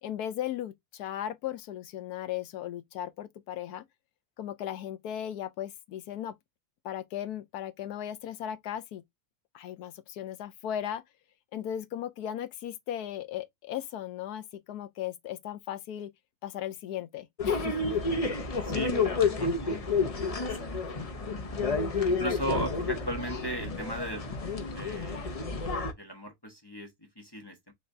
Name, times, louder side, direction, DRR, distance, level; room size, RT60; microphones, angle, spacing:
voice 1, 0.0-3.8 4.4-6.4 6.8-9.0 9.5-11.0 11.5-16.1 16.4-18.0, left 11 dB, 85° left, 1.2 m, -37 dB
sound 1, 17.4-25.9, left 4 dB, 40° left, 0.5 m, -30 dB
voice 2, 18.6-20.6 22.1-24.4 24.6-25.6 26.0-27.7, right 1 dB, 20° left, 1.0 m, -37 dB
5.7 x 3.3 x 2.6 m
omnidirectional pair, 1.6 m